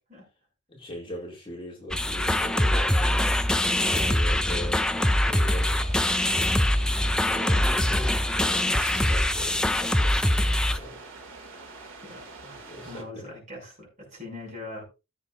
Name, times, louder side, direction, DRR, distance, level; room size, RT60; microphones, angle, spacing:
voice 1, 0.7-6.1 6.4-11.0 12.7-13.3, left 1 dB, 25° left, 2.3 m, -41 dB
sound 1, 1.9-10.8, left 1 dB, 5° left, 0.4 m, -23 dB
sound 2, 5.0-13.0, right 3 dB, 65° right, 2.3 m, -45 dB
voice 2, 12.0-14.8, left 2 dB, 35° right, 5.7 m, -42 dB
16.0 x 7.3 x 2.5 m
head